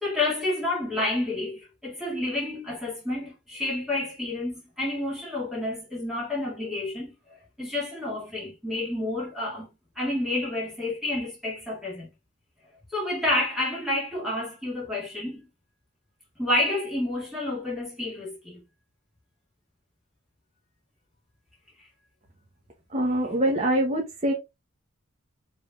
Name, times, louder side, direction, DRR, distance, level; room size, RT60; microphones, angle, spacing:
voice 1, 0.0-7.1 7.6-9.7 10.0-12.1 12.9-15.4 16.4-18.6, left 2 dB, ahead, 2.0 m, -29 dB
voice 2, 22.9-24.3, right 1 dB, 30° right, 0.9 m, -24 dB
5.2 x 3.4 x 2.4 m
head